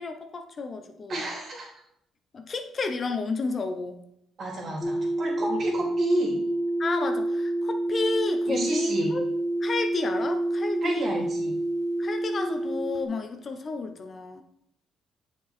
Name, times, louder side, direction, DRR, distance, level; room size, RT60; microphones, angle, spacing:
voice 1, 0.0-1.2 2.3-4.0 5.4-5.6 6.8-9.2 9.6-11.2 12.0-14.4, left 4 dB, 45° left, 7 dB, 0.8 m, -31 dB
voice 2, 1.1-1.7 4.4-6.4 8.5-9.1 10.8-11.5, right 1 dB, 55° right, -2 dB, 2.6 m, -31 dB
sound 1, 4.8-13.1, right 1 dB, 20° left, 1.1 m, -28 dB
6.9 x 4.5 x 4.3 m, 0.76 s
supercardioid pair, 75°, 0 cm